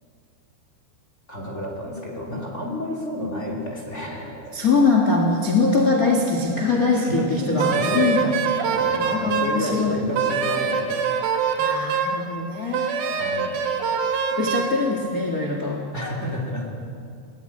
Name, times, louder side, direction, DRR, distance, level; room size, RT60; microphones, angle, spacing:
voice 1, 1.3-4.6 6.6-11.1 13.2-13.6 15.9-16.7, left 1 dB, 20° left, 0 dB, 2.5 m, -31 dB
voice 2, 4.5-8.4 8.9-10.0 11.6-13.3 14.3-15.8, left 3 dB, 55° left, 1 dB, 1.0 m, -22 dB
Wind instrument woodwind instrument, 7.6-9.6 10.1-12.2 12.7-14.7, right 6 dB, 85° right, 3.8 m, -24 dB
20.5 x 17.5 x 9.0 m, 2.4 s
omnidirectional pair, 4.9 m